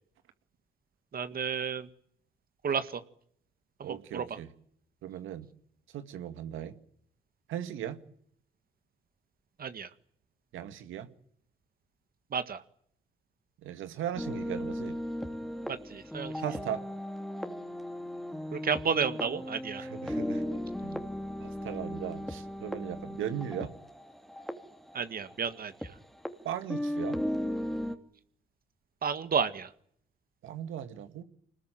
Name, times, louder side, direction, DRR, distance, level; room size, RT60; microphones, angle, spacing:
voice 1, 1.1-1.9 2.6-3.0 3.8-4.2 9.6-9.9 12.3-12.6 15.7-16.3 18.5-19.9 24.9-25.7 29.0-29.7, right 6 dB, 50° right, 1.7 m, -31 dB
voice 2, 3.8-4.5 5.0-5.5 5.9-6.7 7.5-8.0 10.5-11.1 13.6-15.0 16.4-16.8 19.8-21.1 21.4-23.7 26.4-27.2 30.4-31.2, right 10 dB, 85° right, 2.1 m, -38 dB
sound 1, 14.2-25.9 26.2-26.3 26.7-28.0, equal, ahead, 2.8 m, -36 dB
25.0 x 20.0 x 9.2 m
cardioid pair, 90°, 20 cm